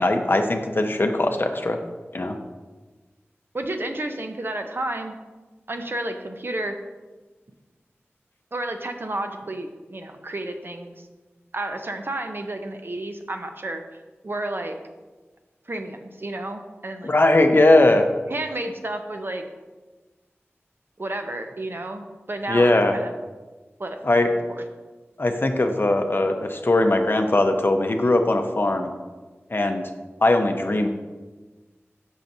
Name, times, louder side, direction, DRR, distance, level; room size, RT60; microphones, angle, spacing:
voice 1, 0.0-1.8 2.1-2.4 17.0-18.1 22.5-22.9 24.0-24.3 25.2-28.9 29.5-29.8 30.2-30.9, left 2 dB, 50° left, 5 dB, 0.6 m, -20 dB
voice 2, 3.5-5.1 5.7-6.8 8.5-11.1 11.5-13.8 14.2-14.8 15.7-17.1 18.3-19.4 21.0-23.1 23.8-24.0 24.5-24.6, right 1 dB, 50° right, 5 dB, 0.6 m, -31 dB
6.3 x 5.6 x 2.7 m, 1.3 s
wide cardioid pair, 45°, 5 cm